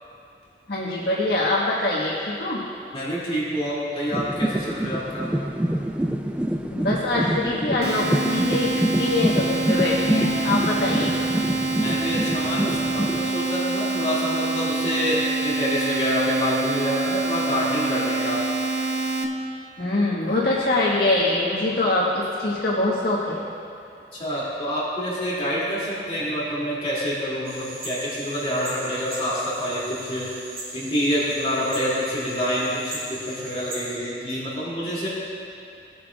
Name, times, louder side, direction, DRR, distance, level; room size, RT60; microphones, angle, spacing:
voice 1, 0.7-2.6 6.7-11.2 19.8-23.4, left 2 dB, 75° left, -6 dB, 1.4 m, -23 dB
voice 2, 2.9-5.3 11.8-18.4 24.1-30.3 30.7-35.1, equal, 35° left, -8 dB, 2.3 m, -27 dB
sound 1, 4.1-13.3, right 1 dB, 5° right, 0.3 m, -26 dB
sound 2, 7.8-19.2, right 3 dB, 70° right, 0.7 m, -26 dB
sound 3, 27.4-34.0, right 1 dB, 50° right, 2.6 m, -38 dB
18.0 x 8.4 x 2.3 m, 2.5 s
head